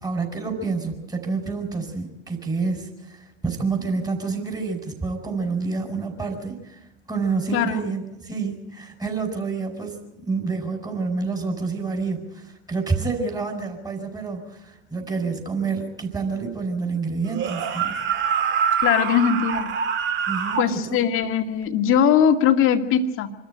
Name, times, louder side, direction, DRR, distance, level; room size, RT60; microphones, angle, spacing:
voice 1, 0.0-6.8 7.1-17.9 20.3-21.0, right 4 dB, 10° right, 4 dB, 5.0 m, -28 dB
sound 1, 17.3-20.7, right 7 dB, 35° right, 2.0 m, -25 dB
voice 2, 18.8-19.7 20.6-23.3, left 8 dB, 40° left, 6 dB, 2.1 m, -20 dB
26.0 x 13.5 x 9.1 m, 0.99 s
hypercardioid pair, 95°, 34 cm